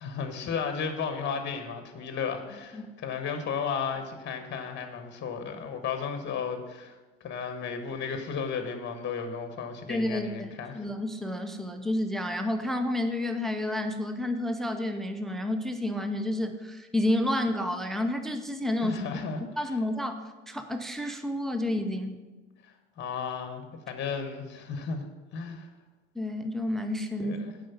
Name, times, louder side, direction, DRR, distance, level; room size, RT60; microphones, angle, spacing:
voice 1, 0.0-10.9 18.8-19.4 22.6-25.0 25.3-25.7 27.2-27.5, left 6 dB, 30° left, 7 dB, 1.2 m, -34 dB
voice 2, 9.9-19.0 19.6-22.2 26.1-27.4, left 1 dB, ahead, 7 dB, 0.6 m, -30 dB
7.7 x 5.3 x 6.9 m, 1.2 s
hypercardioid pair, 90°, 38 cm